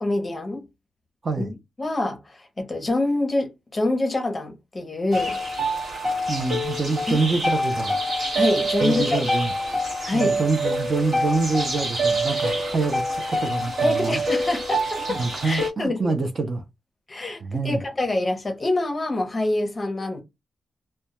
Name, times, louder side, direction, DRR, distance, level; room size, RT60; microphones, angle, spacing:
voice 1, 0.0-0.7 1.4-1.5 1.8-5.4 7.1-7.2 8.3-9.2 10.0-10.4 13.8-15.2 15.4-16.2 17.1-20.2, left 2 dB, 20° left, 0.6 m, -26 dB
sound 1, 5.1-15.7, right 1 dB, 65° right, 1.2 m, -25 dB
voice 2, 6.3-8.0 8.8-9.5 10.1-14.2 15.1-16.6 17.4-17.8, right 3 dB, 35° right, 0.4 m, -26 dB
2.2 x 2.1 x 2.9 m
wide cardioid pair, 165°, 0 cm